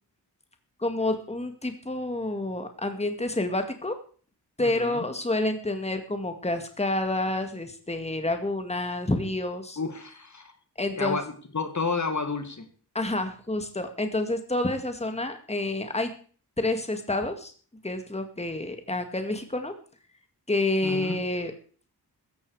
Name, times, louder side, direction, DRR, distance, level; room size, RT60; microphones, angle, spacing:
voice 1, 0.8-4.0 4.6-9.8 10.8-11.2 12.9-16.1 16.6-17.5 17.8-19.7 20.5-21.5, left 2 dB, 15° left, 7 dB, 2.0 m, -28 dB
voice 2, 4.6-5.0 9.8-10.5 10.9-12.7 20.8-21.2, left 4 dB, 45° left, 8 dB, 2.1 m, -31 dB
16.0 x 13.5 x 4.9 m, 0.42 s
wide cardioid pair, 95°, 39 cm